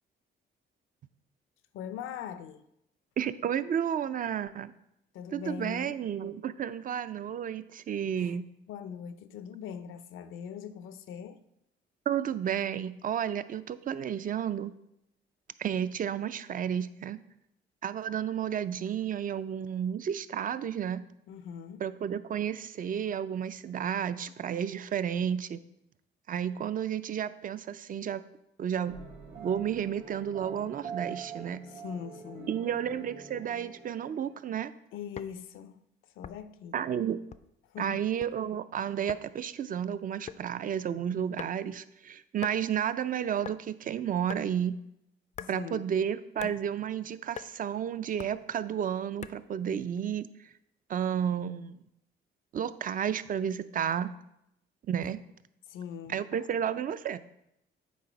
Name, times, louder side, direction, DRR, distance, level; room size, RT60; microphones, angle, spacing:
voice 1, 1.7-2.6 5.1-6.0 8.2-8.3 8.7-11.4 21.3-21.8 31.7-32.6 34.9-35.8 36.2-36.8 37.7-38.0 45.4-45.9 55.7-56.5, left 8 dB, 85° left, 0.6 m, -41 dB
voice 2, 3.2-4.7 5.3-8.5 12.1-14.7 15.6-17.2 17.8-21.0 21.8-25.6 26.3-28.2 28.6-29.0 29.4-31.6 32.5-34.7 36.7-37.2 37.8-44.8 45.5-50.5 50.9-51.8 52.5-54.1 54.9-55.2 56.1-57.2, right 9 dB, 45° right, 0.4 m, -32 dB
sound 1, 28.9-34.5, right 6 dB, 75° right, 1.5 m, -44 dB
sound 2, 35.2-35.4 36.2-36.6 37.3-37.6 38.0-38.3 39.1-39.3 40.3-40.5 41.4-41.8 42.4-42.6 43.4-43.6 44.3-44.5 45.3-45.6 46.4-46.6 47.4-47.5 48.2-48.4 49.2-49.5, left 8 dB, 35° left, 0.4 m, -42 dB
8.5 x 4.0 x 5.1 m
cardioid pair, 90°, 20 cm